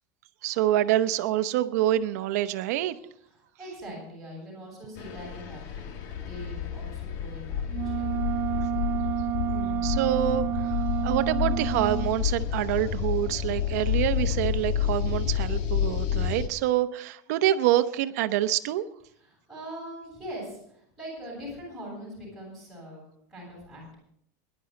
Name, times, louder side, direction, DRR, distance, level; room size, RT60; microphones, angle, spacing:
voice 1, 0.4-3.0 9.5-18.9, right 13 dB, 75° right, 10 dB, 0.9 m, -26 dB
voice 2, 3.6-5.9 6.3-8.1 19.2-23.0 23.3-24.0, equal, ahead, -4 dB, 7.7 m, -42 dB
sound 1, 5.0-16.5, left 9 dB, 50° left, 1.3 m, -29 dB
sound 2, 7.7-12.1, right 13 dB, 35° right, 0.6 m, -30 dB
21.0 x 11.0 x 4.0 m, 0.71 s
supercardioid pair, 170°, 9 cm